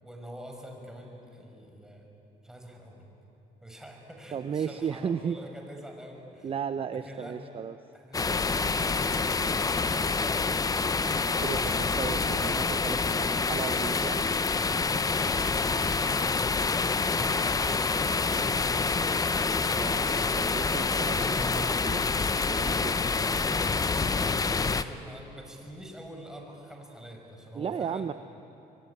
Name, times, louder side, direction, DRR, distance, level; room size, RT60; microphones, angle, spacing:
voice 1, 0.0-2.1 2.4-3.1 3.6-6.5 6.9-7.4 7.9-10.4 15.5-19.5 24.0-28.1, equal, 5° right, 1 dB, 5.5 m, -45 dB
voice 2, 4.3-5.4 6.4-7.8 11.4-14.3 19.8-22.1 22.5-23.0 27.5-28.1, right 7 dB, 35° right, 11 dB, 0.7 m, -35 dB
sound 1, 8.1-24.8, left 4 dB, 20° left, 0.8 m, -27 dB
25.5 x 23.0 x 10.0 m, 2.8 s
cardioid pair, 110°, 17 cm